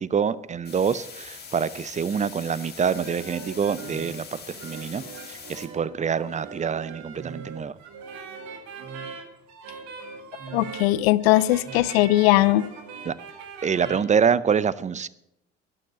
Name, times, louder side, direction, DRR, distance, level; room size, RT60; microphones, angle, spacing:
voice 1, 0.0-5.0 5.3-7.7 13.1-13.2 13.6-15.1, right 7 dB, 20° right, 18 dB, 0.7 m, -26 dB
sound 1, 0.6-5.6, left 5 dB, 30° left, 3.1 m, -42 dB
sound 2, 2.6-14.0, right 5 dB, 60° right, 2.3 m, -41 dB
voice 2, 10.5-12.7, left 17 dB, 70° left, 19 dB, 0.6 m, -19 dB
11.5 x 11.0 x 7.6 m, 0.82 s
figure-of-eight pair, 60°, 32 cm